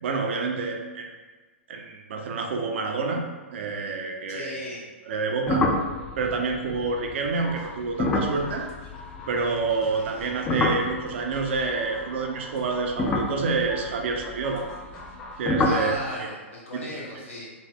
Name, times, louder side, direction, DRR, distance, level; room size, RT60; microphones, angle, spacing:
voice 1, 0.0-1.1 1.7-3.3 3.5-4.6 5.1-5.7 6.2-8.7 9.3-14.7 15.4-16.3 16.9-17.0, right 4 dB, 60° right, 3 dB, 0.5 m, -28 dB
voice 2, 4.3-4.8 9.9-10.3 15.6-17.5, left 2 dB, 75° left, -4 dB, 1.0 m, -37 dB
sound 1, 5.5-9.8 10.1-12.3 12.9-15.2 15.4-16.0, left 2 dB, 20° left, 0.4 m, -28 dB
sound 2, 7.4-15.4, left 2 dB, 35° left, 0.8 m, -45 dB
2.9 x 2.1 x 3.4 m, 1.3 s
hypercardioid pair, 115°, 7 cm